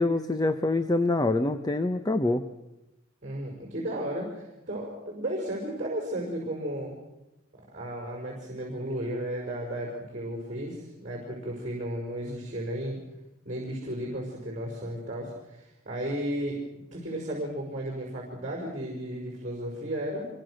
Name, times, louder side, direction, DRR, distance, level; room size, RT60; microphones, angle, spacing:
voice 1, 0.0-2.4, left 2 dB, 20° left, 9 dB, 0.9 m, -25 dB
voice 2, 3.2-6.9 7.7-13.0 13.4-16.6 16.9-20.3, right 1 dB, 40° right, 0 dB, 5.6 m, -34 dB
26.5 x 23.5 x 6.5 m, 0.96 s
head